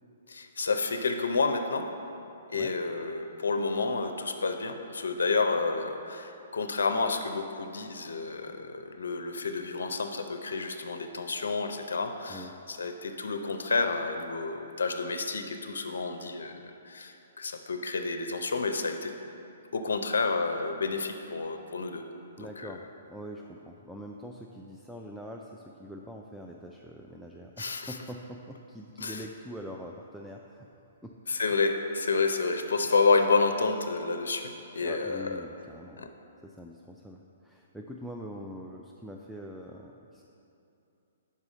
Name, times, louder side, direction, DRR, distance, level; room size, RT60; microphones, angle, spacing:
voice 1, 0.3-1.9 2.5-16.5 16.8-19.1 19.7-22.0 22.6-22.7 27.6-27.9 29.0-29.2 31.3-35.3 36.0-36.1, left 4 dB, 70° left, 6 dB, 0.5 m, -29 dB
voice 2, 22.4-30.7 31.0-31.4 34.8-36.1 36.4-40.2, equal, 5° right, 0 dB, 0.3 m, -44 dB
5.6 x 4.8 x 6.3 m, 2.8 s
figure-of-eight pair, 125°, 0 cm